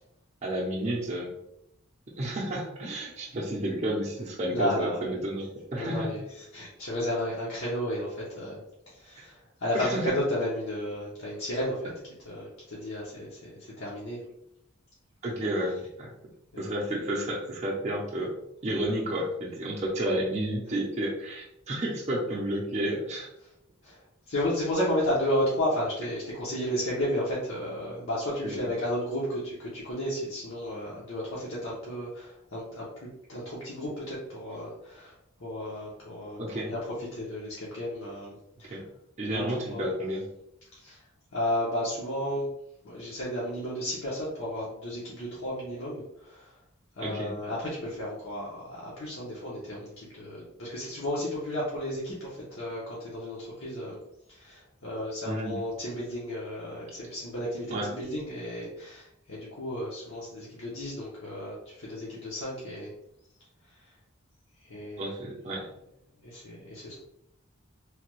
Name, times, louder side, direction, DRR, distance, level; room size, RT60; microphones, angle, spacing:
voice 1, 0.4-1.3 2.2-6.1 9.7-10.2 15.2-16.1 16.6-18.3 18.6-23.3 28.4-28.7 36.4-36.7 38.7-38.8 39.2-40.2 47.0-47.3 55.3-55.6 57.7-57.9 65.0-65.7, right 1 dB, 35° right, -3 dB, 0.5 m, -31 dB
voice 2, 4.5-5.1 5.8-8.6 8.9-11.9 12.2-14.2 16.5-16.7 23.8-24.0 24.3-32.9 33.3-35.1 35.4-38.8 39.3-39.4 39.7-39.9 40.8-41.0 41.3-42.5 42.8-46.5 47.0-54.0 54.3-62.9 64.7-65.1 66.2-67.0, left 1 dB, 70° left, -7 dB, 0.8 m, -33 dB
3.2 x 2.2 x 3.0 m, 0.80 s
head